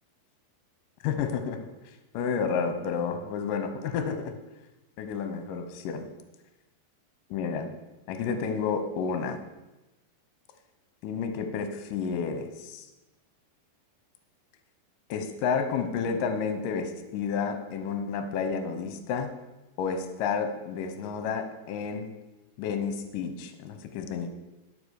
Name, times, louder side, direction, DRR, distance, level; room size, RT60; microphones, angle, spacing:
voice 1, 1.0-1.6 2.1-4.3 5.0-6.1 7.3-7.8 8.1-9.4 11.0-12.9 15.1-19.3 19.8-22.1 22.6-24.3, left 6 dB, 70° left, 7 dB, 2.1 m, -30 dB
13.0 x 5.2 x 6.5 m, 1.1 s
omnidirectional pair, 4.8 m